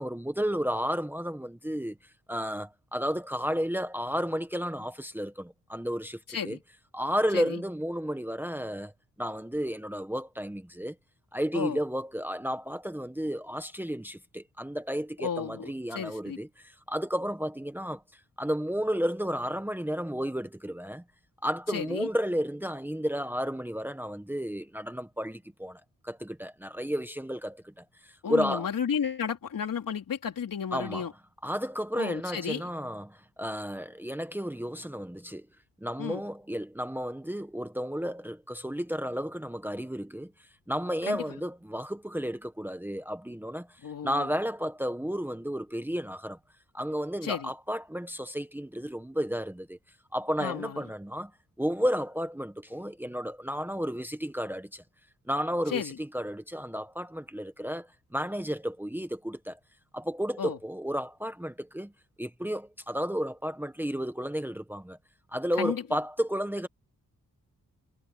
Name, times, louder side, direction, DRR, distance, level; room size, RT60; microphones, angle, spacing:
voice 1, 0.0-2.0 2.3-6.6 6.9-8.9 9.2-10.9 11.3-21.0 21.4-28.7 30.7-31.1 31.4-35.5 35.8-46.4 46.7-49.8 50.1-51.3 51.6-54.8 55.3-59.6 59.9-61.9 62.2-65.0 65.3-66.7, equal, 5° right, 1.2 m, -32 dB
voice 2, 6.3-6.6 7.3-7.6 11.5-11.8 15.2-16.4 21.7-22.1 28.2-31.1 31.9-32.6 36.0-36.2 41.1-41.4 43.8-44.3 47.2-47.5 50.4-50.8 55.7-56.0 60.4-60.6 65.6-66.0, left 7 dB, 65° left, 3.9 m, -33 dB
wide cardioid pair, 120°, 35 cm